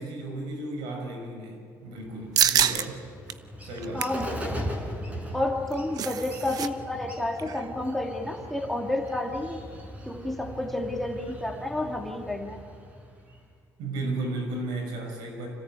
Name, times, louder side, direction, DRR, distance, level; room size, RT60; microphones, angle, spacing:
voice 1, 0.0-3.0 3.6-4.1 13.8-15.5, right 2 dB, 80° right, 3 dB, 6.2 m, -34 dB
Bird, 2.0-13.5, equal, 20° right, 5.5 m, -39 dB
sound 1, 2.4-2.9 3.3-3.4 3.8-4.2 5.5-6.7 6.9-7.1 7.4-7.7, right 9 dB, 55° right, 1.0 m, -25 dB
voice 2, 3.9-4.7 5.3-9.6 10.1-12.6, left 1 dB, 5° left, 1 dB, 2.5 m, -30 dB
26.0 x 16.5 x 9.1 m, 2.2 s
cardioid pair, 95°, 7 cm